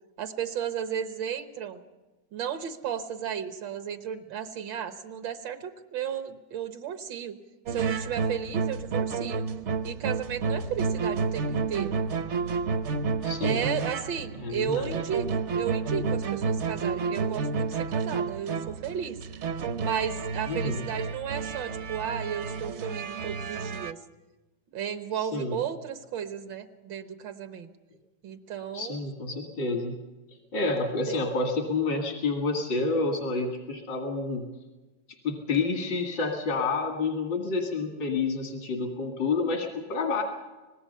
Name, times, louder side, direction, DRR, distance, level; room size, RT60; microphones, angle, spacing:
voice 1, 0.2-1.8 2.3-7.4 7.7-9.4 9.8-12.0 13.4-19.2 19.8-24.0 24.7-27.7 28.2-29.0 31.1-31.2, right 8 dB, 85° right, 8 dB, 1.9 m, -34 dB
sound 1, 7.7-23.9, right 5 dB, 55° right, 0.8 m, -30 dB
voice 2, 13.2-13.6 14.4-14.9 20.5-20.8 25.1-25.6 28.7-29.9 30.5-34.5 35.2-40.2, left 3 dB, 80° left, 1 dB, 2.9 m, -29 dB
25.5 x 19.5 x 5.5 m, 1.2 s
omnidirectional pair, 2.0 m